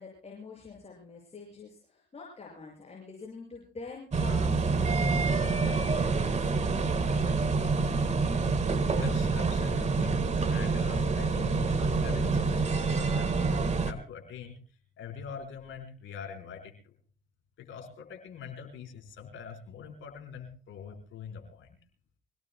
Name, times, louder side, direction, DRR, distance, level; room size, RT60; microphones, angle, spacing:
voice 1, 0.0-6.5, left 4 dB, 30° left, -2 dB, 6.6 m, -46 dB
sound 1, 4.1-13.9, right 4 dB, 35° right, 1.6 m, -27 dB
voice 2, 8.9-14.6 15.0-16.9 17.6-21.7, left 7 dB, 80° left, 4 dB, 4.2 m, -43 dB
25.5 x 17.5 x 2.2 m, 0.39 s
cardioid pair, 90°, 20 cm